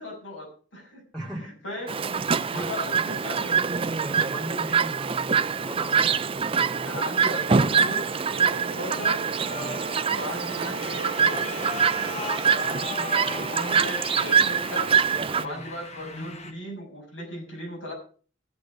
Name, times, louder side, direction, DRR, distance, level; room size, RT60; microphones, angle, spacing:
voice 1, 0.0-1.0 1.4-2.2 2.5-3.7 6.8-8.0 8.3-9.2 10.1-11.7 12.4-14.9 15.4-17.9, left 1 dB, 90° left, -3 dB, 6.6 m, -37 dB
voice 2, 1.1-1.6 2.5-2.8 4.0-6.2 6.5-7.0 9.5-9.8 15.2-15.6, right 1 dB, 5° left, -4 dB, 2.7 m, -38 dB
Chirp tweet, 1.9-15.5, right 6 dB, 30° right, 0.5 m, -25 dB
sound 1, 6.6-12.7, right 6 dB, 60° right, 1.7 m, -42 dB
sound 2, 7.6-16.5, left 3 dB, 35° left, 1.6 m, -39 dB
16.0 x 6.6 x 6.3 m, 0.41 s
head